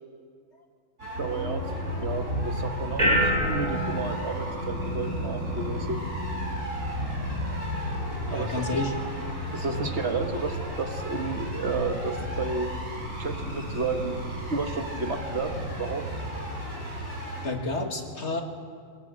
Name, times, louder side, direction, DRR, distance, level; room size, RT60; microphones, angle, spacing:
sound 1, 1.0-17.5, equal, 85° right, 6.5 m, -33 dB
voice 1, 1.2-1.6 2.0-6.0 8.3-8.8 9.5-12.8 13.2-16.0, right 4 dB, 60° right, 5 dB, 1.7 m, -32 dB
sound 2, 2.3-15.5, equal, 30° right, 5.6 m, -34 dB
voice 2, 8.3-8.9 17.4-18.4, left 2 dB, 60° left, 3 dB, 2.2 m, -30 dB
22.5 x 17.5 x 7.7 m, 2.1 s
omnidirectional pair, 1.3 m